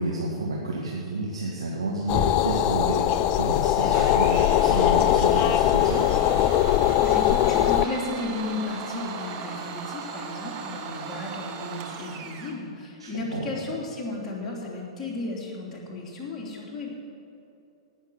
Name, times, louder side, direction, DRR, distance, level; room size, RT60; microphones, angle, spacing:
voice 1, 0.0-6.1 13.0-13.5, right 2 dB, 75° right, -2 dB, 1.6 m, -30 dB
sound 1, 2.1-7.8, left 13 dB, 35° left, 0.4 m, -21 dB
Domestic sounds home sounds, 3.9-12.6, right 6 dB, 35° right, 1.3 m, -37 dB
voice 2, 7.0-16.9, left 2 dB, 20° left, -4 dB, 3.2 m, -34 dB
17.5 x 6.3 x 7.1 m, 2.8 s
figure-of-eight pair, 105°, 3 cm